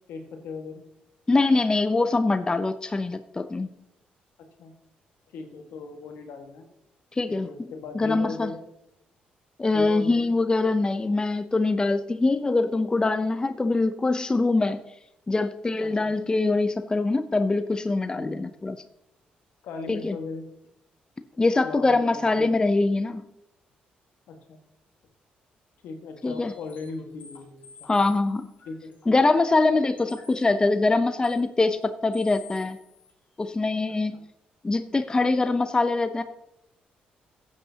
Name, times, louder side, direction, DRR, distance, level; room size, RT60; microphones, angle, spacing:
voice 1, 0.1-0.8 4.6-4.7 5.3-6.6 7.3-8.6 9.7-10.3 15.8-16.1 18.1-18.4 19.6-20.5 21.6-22.5 24.3-24.6 25.8-27.7 28.6-28.9, left 4 dB, 80° left, 4 dB, 1.6 m, -38 dB
voice 2, 1.3-3.7 7.2-7.5 7.9-8.5 9.6-14.8 15.3-18.8 19.9-20.2 21.4-23.2 26.2-26.5 27.9-28.5 29.1-32.8 33.4-34.2 34.6-36.2, left 3 dB, 25° left, 10 dB, 0.6 m, -23 dB
sound 1, 26.2-30.6 31.2-31.4 31.8-31.9 32.1-33.1 33.4-33.5, left 5 dB, 45° left, 3.8 m, -51 dB
15.0 x 8.4 x 2.8 m, 0.84 s
supercardioid pair, 60°, 3 cm